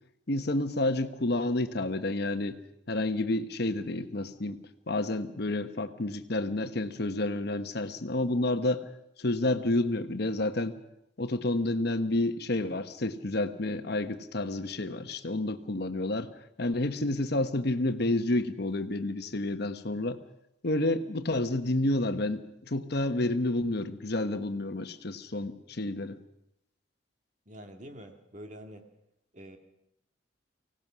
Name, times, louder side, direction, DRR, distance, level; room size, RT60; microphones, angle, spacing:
voice 1, 0.3-2.6 2.9-4.6 4.9-8.8 9.2-10.7 11.2-16.3 16.6-20.2 20.6-26.2, left 2 dB, 60° left, 9 dB, 1.1 m, -29 dB
voice 2, 27.5-28.9 29.3-29.6, equal, 40° right, 5 dB, 1.9 m, -46 dB
24.5 x 17.5 x 6.2 m, 0.81 s
head